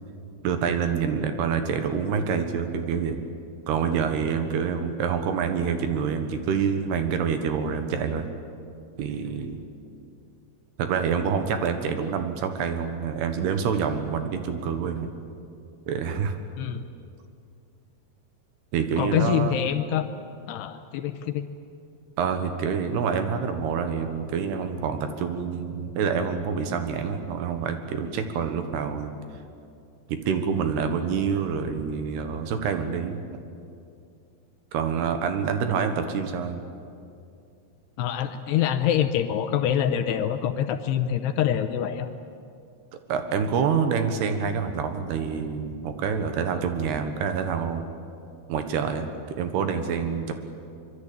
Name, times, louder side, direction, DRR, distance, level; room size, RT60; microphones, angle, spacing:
voice 1, 0.4-3.2 3.7-8.3 9.0-9.6 10.8-15.2 15.9-16.3 18.7-19.7 22.2-29.1 30.1-33.2 34.7-36.6 42.9-47.9 48.5-50.3, right 6 dB, 70° right, 7 dB, 3.2 m, -27 dB
voice 2, 19.0-20.1 20.5-21.4 38.0-42.1, left 10 dB, 80° left, 8 dB, 2.7 m, -25 dB
24.0 x 23.0 x 8.7 m, 2.5 s
omnidirectional pair, 5.3 m